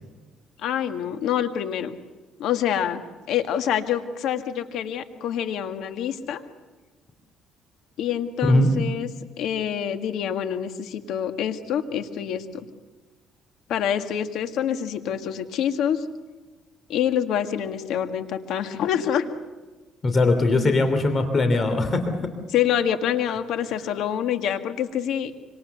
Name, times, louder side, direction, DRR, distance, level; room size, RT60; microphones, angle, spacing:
voice 1, 0.6-2.0 2.4-3.0 3.3-6.4 8.0-9.1 9.4-12.6 13.7-16.0 16.9-19.3 22.5-25.3, left 9 dB, 75° left, 8 dB, 1.8 m, -26 dB
voice 2, 20.0-22.2, left 2 dB, 30° left, 8 dB, 3.0 m, -20 dB
25.5 x 25.5 x 7.0 m, 1.2 s
cardioid pair, 120°, 0 cm